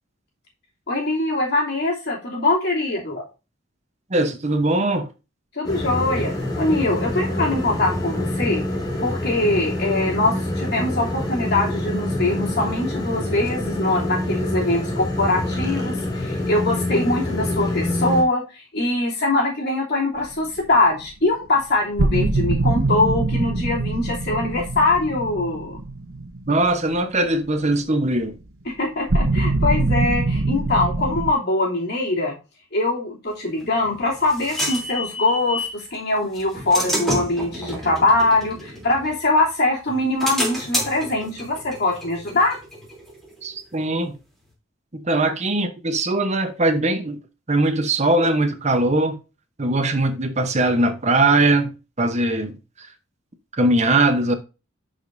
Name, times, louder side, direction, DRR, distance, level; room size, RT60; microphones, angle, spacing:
voice 1, 0.9-3.3 5.5-8.6 9.0-25.8 28.6-32.4 32.7-42.6, left 2 dB, 55° left, 3.0 m, -22 dB
voice 2, 4.1-5.1 26.5-28.3 43.4-44.2 44.9-47.2 47.5-49.2 49.6-51.7 52.0-52.9 53.5-54.3, right 2 dB, 35° right, 0.9 m, -20 dB
sound 1, 5.6-18.2, left 1 dB, 20° left, 2.4 m, -26 dB
sound 2, 20.2-20.3 20.6-20.7 22.0-27.0 29.1-31.3, right 2 dB, 70° right, 0.9 m, -23 dB
sound 3, 33.6-35.8 36.3-39.4 39.9-43.3, equal, ahead, 3.1 m, -29 dB
11.5 x 5.1 x 2.6 m
head